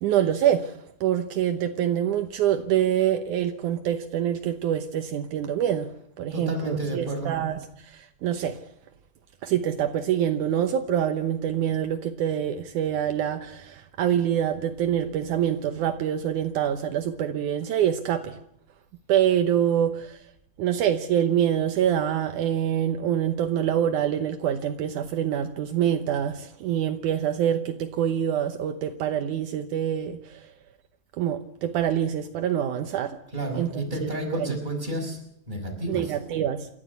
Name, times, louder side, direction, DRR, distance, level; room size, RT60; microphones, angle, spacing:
voice 1, 0.0-8.6 9.4-18.4 19.1-20.2 20.6-30.4 31.2-33.2 33.5-33.7 34.0-34.6 35.9-36.7, right 10 dB, 75° right, 7 dB, 1.8 m, -25 dB
voice 2, 6.3-7.3 33.3-35.2 35.5-36.1, right 1 dB, 10° right, 1 dB, 5.3 m, -31 dB
28.5 x 13.5 x 8.2 m, 0.72 s
omnidirectional pair, 4.9 m